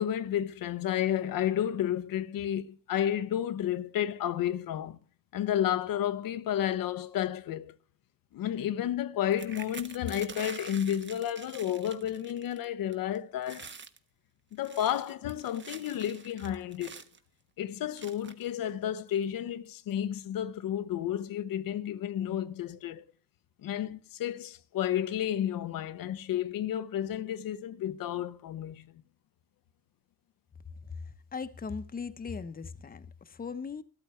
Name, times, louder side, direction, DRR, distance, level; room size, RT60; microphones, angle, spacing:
voice 1, 0.0-5.0 5.3-7.8 8.3-13.7 14.5-17.0 17.6-23.0 23.6-28.9, left 10 dB, 85° left, 0.9 m, -31 dB
sound 1, 9.3-12.6 12.9-13.2 13.4-14.0 14.5-17.2 18.0-18.5 19.2-19.3 19.6-19.9, right 5 dB, 35° right, 1.4 m, -47 dB
voice 2, 31.3-33.8, left 5 dB, 25° left, 1.0 m, -38 dB
14.0 x 13.0 x 4.5 m
cardioid pair, 130°, 33 cm